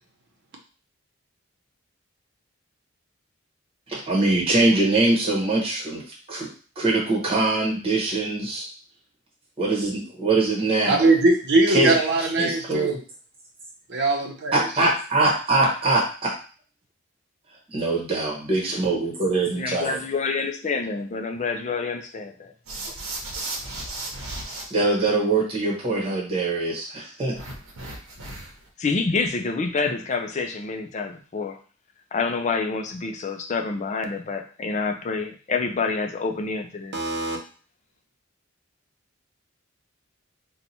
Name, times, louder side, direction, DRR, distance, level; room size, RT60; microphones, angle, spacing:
voice 1, 3.9-6.0 6.3-6.5 6.8-8.5 9.6-11.1 11.7-11.9 12.4-13.0 14.5-16.3 17.7-20.0 24.7-27.3, right 2 dB, 30° right, -3 dB, 1.1 m, -23 dB
voice 2, 10.9-13.0 13.9-14.7 36.9-37.4, right 2 dB, 55° right, 2 dB, 0.7 m, -21 dB
voice 3, 19.6-22.5 28.8-31.6 32.1-37.1, left 4 dB, 35° left, 5 dB, 0.4 m, -27 dB
sound 1, 22.7-24.6 27.3-28.7, right 2 dB, 90° right, 0.8 m, -35 dB
2.8 x 2.3 x 4.1 m, 0.39 s
head